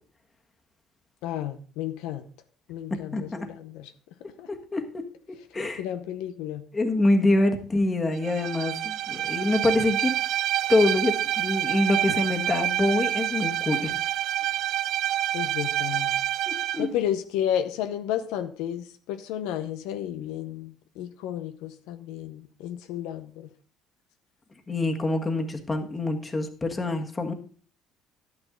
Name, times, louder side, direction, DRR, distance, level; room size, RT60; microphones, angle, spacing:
voice 1, 1.2-2.3 2.7-3.9 4.4-4.5 5.8-6.7 15.3-16.2 16.8-23.5, left 10 dB, 90° left, 0.8 m, -32 dB
voice 2, 4.5-5.0 5.5-5.8 6.7-10.1 10.7-13.9 16.5-16.9 24.7-27.3, left 2 dB, 20° left, 1.6 m, -25 dB
Bowed string instrument, 8.2-16.9, right 13 dB, 70° right, 0.4 m, -27 dB
11.0 x 9.6 x 3.8 m
cardioid pair, 105°, 0 cm